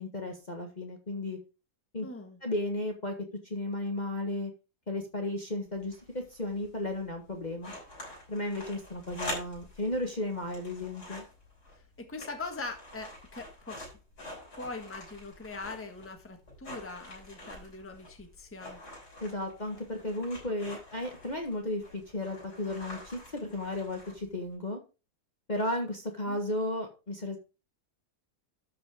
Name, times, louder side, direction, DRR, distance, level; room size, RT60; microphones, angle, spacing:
voice 1, 0.0-1.4 1.9-2.1 2.4-3.1 3.4-4.5 4.9-7.7 8.3-11.2 19.2-24.8 25.5-27.4, left 1 dB, 30° left, 2 dB, 1.5 m, -34 dB
voice 2, 2.0-2.4 11.7-13.8 14.5-18.8 26.3-26.4, left 3 dB, 10° left, 5 dB, 1.5 m, -42 dB
sound 1, 5.7-24.5, left 1 dB, 70° left, 7.2 m, -47 dB
12.5 x 5.4 x 4.8 m, 0.31 s
omnidirectional pair, 1.7 m